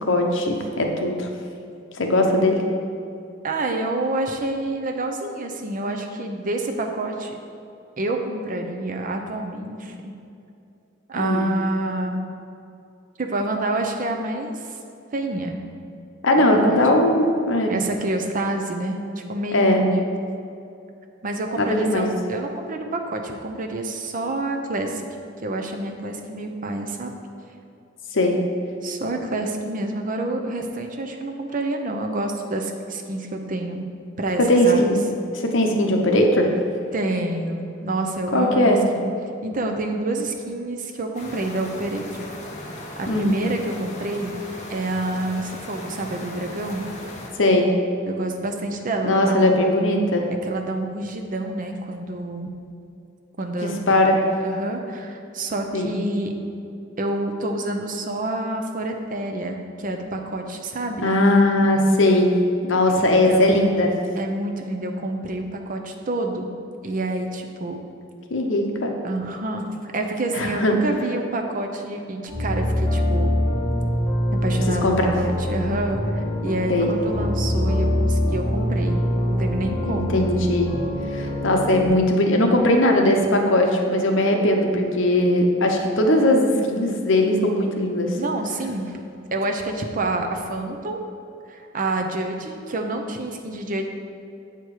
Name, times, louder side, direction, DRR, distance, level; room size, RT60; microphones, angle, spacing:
voice 1, 0.0-1.3 2.0-2.6 11.1-11.5 16.2-17.7 19.5-19.8 21.6-22.1 28.1-28.4 34.5-35.0 35.3-36.5 38.3-38.8 43.1-43.3 47.4-47.7 49.0-50.2 53.6-54.2 55.7-56.0 61.0-62.3 62.6-63.9 68.3-68.9 70.3-70.7 74.7-75.1 76.7-76.9 79.9-80.7 81.1-88.2, left 1 dB, 70° left, 3 dB, 0.9 m, -19 dB
voice 2, 3.4-7.4 8.0-10.1 11.1-12.2 13.2-14.7 15.1-15.6 16.4-16.8 17.7-19.0 19.3-20.0 21.2-25.0 25.4-27.1 28.8-33.9 34.2-34.9 36.9-39.1 39.4-42.3 43.0-44.4 44.7-46.9 48.0-49.6 50.5-52.5 53.4-53.8 54.4-56.3 57.0-61.2 62.9-63.6 64.2-66.5 66.8-67.8 69.0-73.3 74.4-79.0 79.3-80.2 88.1-89.0 89.3-91.0 91.5-93.9, right 2 dB, 45° right, 4 dB, 0.6 m, -28 dB
sound 1, 41.1-47.3, left 1 dB, 40° left, 1.0 m, -37 dB
sound 2, 72.3-81.9, left 1 dB, 10° left, 1.5 m, -24 dB
8.1 x 4.5 x 4.8 m, 2.6 s
head